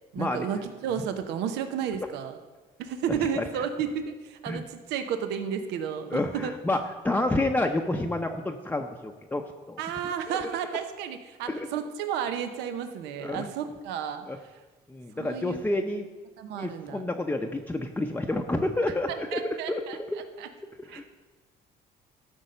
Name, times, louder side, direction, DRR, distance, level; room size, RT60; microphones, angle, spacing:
voice 1, 0.1-2.4 2.8-6.1 6.3-6.5 9.8-14.5 15.2-15.6 16.4-17.0 19.1-20.0 20.4-20.5 20.9-21.1, right 8 dB, 90° right, 8 dB, 0.8 m, -32 dB
voice 2, 6.1-9.4 9.7-9.8 11.5-11.7 13.2-13.5 14.3-14.4 14.9-16.1 16.5-19.4 19.7-19.8 20.9-21.0, left 2 dB, 10° left, 3 dB, 0.6 m, -29 dB
12.5 x 5.4 x 6.6 m, 1.2 s
cardioid pair, 110°, 17 cm